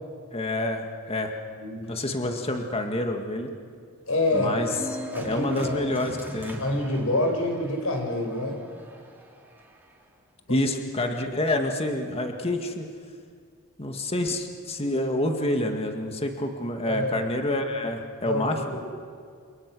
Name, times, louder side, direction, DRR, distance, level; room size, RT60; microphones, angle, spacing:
voice 1, 0.3-1.3 1.9-3.5 4.3-4.7 5.2-6.6 10.5-12.9 13.8-18.8, left 1 dB, 25° left, 4 dB, 2.0 m, -28 dB
voice 2, 1.6-1.9 4.1-4.8 5.1-6.0 6.6-8.6 10.5-10.6 16.8-17.2 18.2-18.8, left 1 dB, 65° left, 3 dB, 5.7 m, -27 dB
Organ, 4.3-10.0, equal, 10° right, 3.5 m, -40 dB
28.5 x 28.0 x 6.3 m, 2.2 s
head